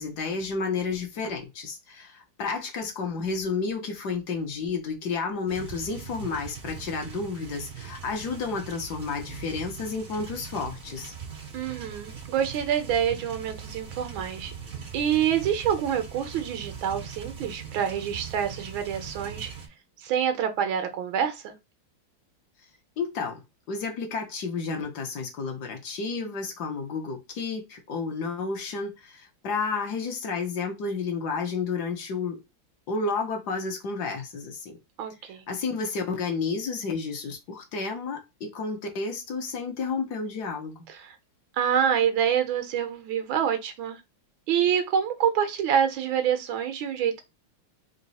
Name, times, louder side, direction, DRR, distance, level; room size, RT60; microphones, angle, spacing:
voice 1, 0.0-11.1 23.0-23.4 23.7-32.4 32.9-34.8 35.5-40.8, left 4 dB, 65° left, 1.3 m, -31 dB
sound 1, 5.5-19.7, right 6 dB, 65° right, 0.5 m, -41 dB
voice 2, 11.5-14.5 14.9-19.5 20.0-21.6 35.0-35.4 40.9-41.1 41.6-44.0 44.5-47.2, right 8 dB, 90° right, 1.6 m, -26 dB
4.0 x 2.3 x 4.0 m
omnidirectional pair, 2.1 m